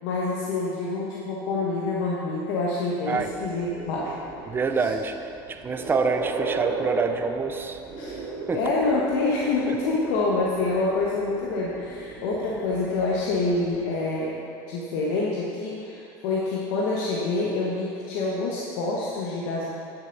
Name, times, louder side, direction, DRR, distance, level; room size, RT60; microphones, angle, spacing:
voice 1, 0.0-4.2 4.8-4.9 8.0-8.2 8.5-14.4 14.7-19.7, left 3 dB, 80° left, -4 dB, 1.2 m, -27 dB
sound 1, 3.1-13.9, right 3 dB, 45° right, 2.2 m, -36 dB
voice 2, 4.5-7.8 8.5-8.6 9.7-9.8, right 4 dB, 20° right, 7 dB, 0.6 m, -27 dB
11.5 x 7.0 x 4.0 m, 2.6 s
supercardioid pair, 115°, 11 cm